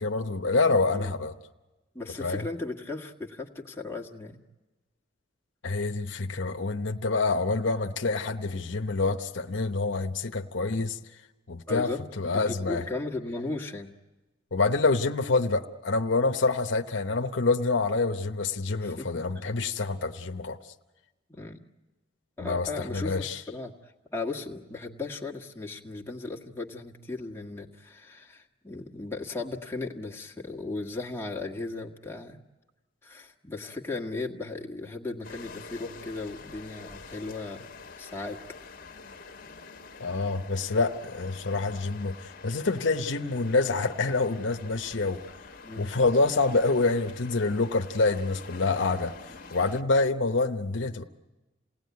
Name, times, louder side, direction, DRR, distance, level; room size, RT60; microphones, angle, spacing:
voice 1, 0.0-1.3 2.2-2.4 5.6-11.0 11.5-11.9 12.2-12.8 14.5-20.6 22.4-23.4 40.0-45.2 45.8-49.1 49.5-51.0, left 3 dB, 70° left, 6 dB, 0.9 m, -27 dB
voice 2, 1.9-4.4 11.7-12.0 12.3-13.9 18.8-19.1 19.3-19.4 21.3-21.6 22.4-32.4 33.0-38.4 45.6-45.9, left 3 dB, 15° left, 0 dB, 1.6 m, -36 dB
sound 1, 35.2-49.8, left 4 dB, 50° left, 1.3 m, -47 dB
28.0 x 18.0 x 9.4 m, 1.1 s
head